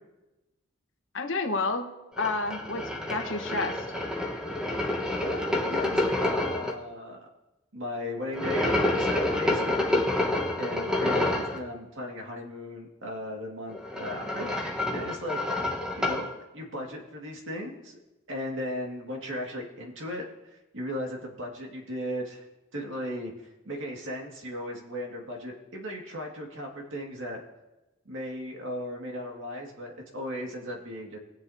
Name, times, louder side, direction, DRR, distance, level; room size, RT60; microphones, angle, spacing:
voice 1, 1.1-2.8 3.1-3.8, left 3 dB, 85° left, 4 dB, 1.3 m, -30 dB
sound 1, 2.2-6.7 8.3-11.6 13.7-16.3, left 1 dB, 5° right, 1.3 m, -28 dB
voice 2, 5.1-7.2 7.7-10.1 10.6-15.6 15.9-18.0 18.3-20.2 20.5-22.5 22.7-23.3 23.6-27.4 28.1-31.2, equal, 80° right, 0 dB, 2.1 m, -36 dB
20.5 x 7.7 x 2.8 m, 1.0 s
head